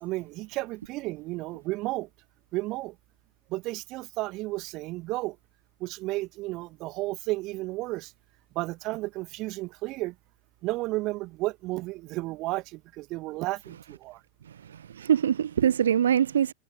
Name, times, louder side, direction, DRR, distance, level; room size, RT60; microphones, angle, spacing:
voice 1, 0.0-2.1 2.5-2.9 3.5-5.4 5.8-8.1 8.5-10.1 10.6-14.2, right 20 dB, 40° right, 2.3 m, -32 dB
voice 2, 14.7-16.5, right 9 dB, 65° right, 0.3 m, -23 dB
figure-of-eight pair, 90°, 0 cm